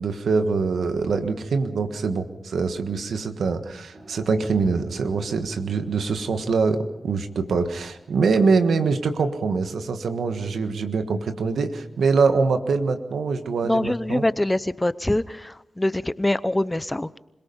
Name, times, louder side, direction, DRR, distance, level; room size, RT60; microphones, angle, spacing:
voice 1, 0.0-14.3, right 4 dB, 85° right, 8 dB, 1.5 m, -24 dB
sound 1, 3.9-10.1, right 1 dB, 45° right, 4.1 m, -51 dB
voice 2, 13.6-17.2, left 1 dB, 20° left, 16 dB, 0.7 m, -24 dB
26.5 x 18.0 x 5.5 m, 0.91 s
cardioid pair, 45°, 0 cm